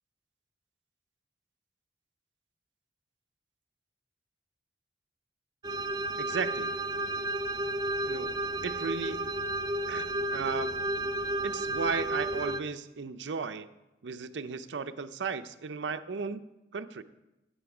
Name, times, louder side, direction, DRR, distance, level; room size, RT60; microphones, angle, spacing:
sound 1, 5.6-12.6, right 1 dB, 25° right, 0.4 m, -32 dB
voice 1, 6.2-6.7 8.0-8.3 8.6-9.3 9.9-10.7 11.4-13.7 14.0-16.5 16.7-17.0, right 5 dB, 90° right, 10 dB, 0.6 m, -35 dB
14.5 x 8.9 x 4.9 m, 0.96 s
head